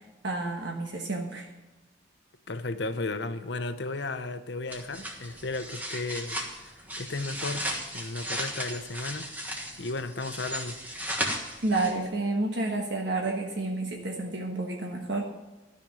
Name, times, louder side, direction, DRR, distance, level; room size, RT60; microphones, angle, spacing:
voice 1, 0.2-1.5 11.6-15.2, right 2 dB, 65° right, 1.3 m, -30 dB
voice 2, 2.5-6.4 7.0-9.3 9.8-10.8, left 3 dB, 65° left, 0.8 m, -34 dB
sound 1, 4.7-12.1, equal, 10° right, 1.3 m, -36 dB
13.0 x 5.2 x 8.9 m
head